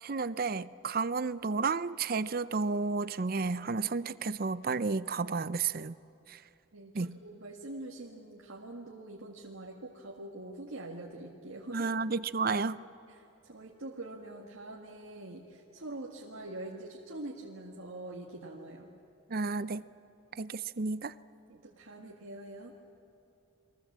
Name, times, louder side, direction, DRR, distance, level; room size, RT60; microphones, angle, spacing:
voice 1, 0.0-5.9 6.3-6.4 6.9-7.2 11.7-12.8 19.3-19.8 20.4-21.1, right 4 dB, 45° right, 16 dB, 0.5 m, -32 dB
voice 2, 6.7-11.9 13.4-18.9 21.5-22.7, right 2 dB, 80° right, -2 dB, 1.9 m, -44 dB
29.5 x 22.5 x 7.4 m, 2.8 s
head